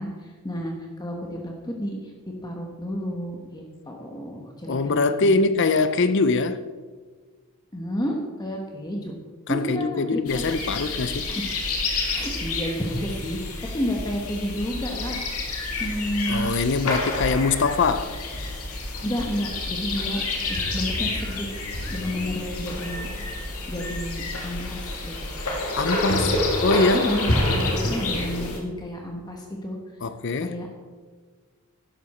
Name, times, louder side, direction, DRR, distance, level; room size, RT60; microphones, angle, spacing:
voice 1, 0.0-2.1 2.4-5.4 7.7-9.1 9.5-10.4 11.3-11.5 12.1-15.5 15.8-16.5 19.0-20.2 20.5-21.5 21.9-23.1 23.7-25.3 26.9-29.8 30.4-30.7, equal, 20° left, 1.1 m, -31 dB
voice 2, 4.7-6.6 9.5-11.3 16.3-18.2 25.8-27.0 30.0-30.5, left 3 dB, 55° left, 0.5 m, -23 dB
sound 1, 10.3-28.6, left 2 dB, 75° left, 2.0 m, -28 dB
11.5 x 11.0 x 4.3 m
head